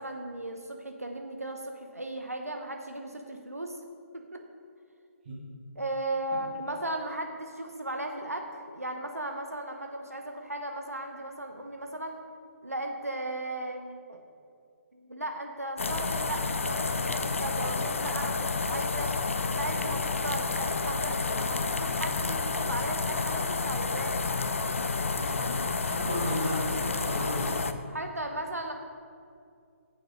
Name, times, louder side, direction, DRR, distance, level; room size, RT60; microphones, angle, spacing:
voice 1, 0.0-3.8 4.1-4.4 5.8-12.2 12.6-14.2 14.9-19.1 19.5-24.2 27.9-28.7, right 1 dB, 85° right, 3 dB, 0.9 m, -36 dB
sound 1, 15.8-27.7, left 4 dB, 60° left, 0.5 m, -30 dB
voice 2, 25.1-27.6, equal, 40° right, -5 dB, 2.2 m, -34 dB
10.0 x 7.9 x 3.7 m, 2.3 s
figure-of-eight pair, 140°, 8 cm